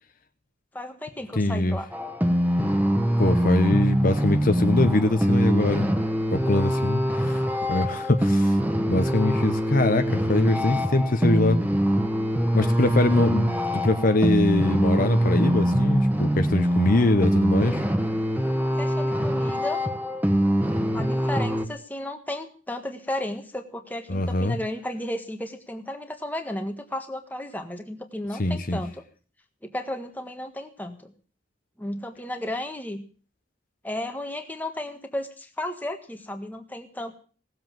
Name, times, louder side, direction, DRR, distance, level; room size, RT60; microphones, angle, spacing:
voice 1, 0.7-1.9 12.6-12.9 18.7-19.8 20.9-29.0 29.6-31.1 31.8-33.0 33.8-37.2, left 1 dB, 10° left, 5 dB, 1.5 m, -34 dB
voice 2, 1.4-1.8 3.2-5.9 6.3-7.4 7.7-8.6 8.9-11.6 12.5-17.9 24.1-24.6 28.4-28.8, left 2 dB, 45° left, 7 dB, 0.9 m, -23 dB
sound 1, 1.9-21.7, equal, 10° right, 1.2 m, -24 dB
17.5 x 7.9 x 7.5 m, 0.41 s
head